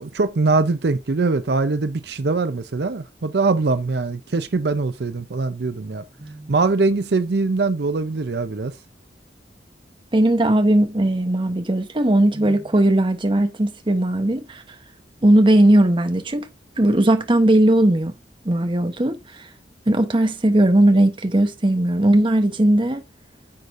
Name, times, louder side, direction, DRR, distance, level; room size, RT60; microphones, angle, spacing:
voice 1, 0.0-6.0 6.5-8.7, right 3 dB, 65° right, 0.6 m, -22 dB
voice 2, 6.2-6.5 10.1-14.6 15.2-16.5 16.8-18.1 18.4-19.2 19.9-23.0, right 1 dB, 30° right, 0.9 m, -18 dB
9.5 x 6.5 x 2.6 m
head